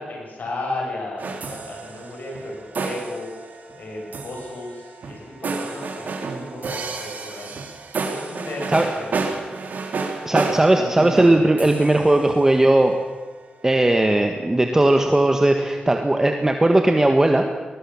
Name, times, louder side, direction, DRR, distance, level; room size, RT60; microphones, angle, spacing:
voice 1, 0.0-7.5 8.0-9.5, left 2 dB, 70° left, -1 dB, 7.7 m, -34 dB
sound 1, 1.2-13.0, right 4 dB, 70° right, 3.1 m, -31 dB
voice 2, 10.2-13.0 13.6-17.5, right 1 dB, 15° right, 4 dB, 1.6 m, -17 dB
21.0 x 20.0 x 7.2 m, 1.3 s
wide cardioid pair, 115°, 3 cm